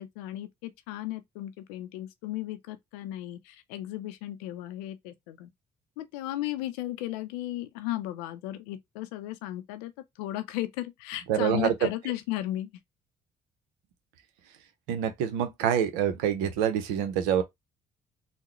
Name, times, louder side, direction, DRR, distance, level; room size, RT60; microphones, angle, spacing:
voice 1, 0.0-5.5 6.0-9.9 10.2-12.7, left 15 dB, 85° left, 0.5 m, -35 dB
voice 2, 11.3-11.7 14.9-17.4, right 9 dB, 80° right, 0.7 m, -26 dB
3.7 x 2.1 x 3.0 m
hypercardioid pair, 50°, 19 cm